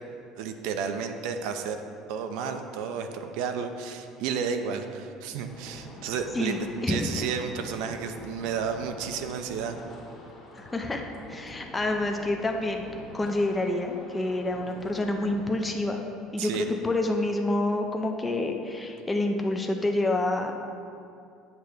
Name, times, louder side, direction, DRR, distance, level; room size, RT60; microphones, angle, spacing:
voice 1, 0.4-1.8 2.1-9.8 16.4-16.7, right 6 dB, 65° right, 6 dB, 0.5 m, -32 dB
sound 1, 5.5-15.5, left 1 dB, 30° left, 1.2 m, -46 dB
voice 2, 6.3-7.1 10.6-12.9 13.1-16.0 16.3-20.5, left 2 dB, 10° left, 3 dB, 0.4 m, -28 dB
8.1 x 3.4 x 6.6 m, 2.5 s
cardioid pair, 170°, 0 cm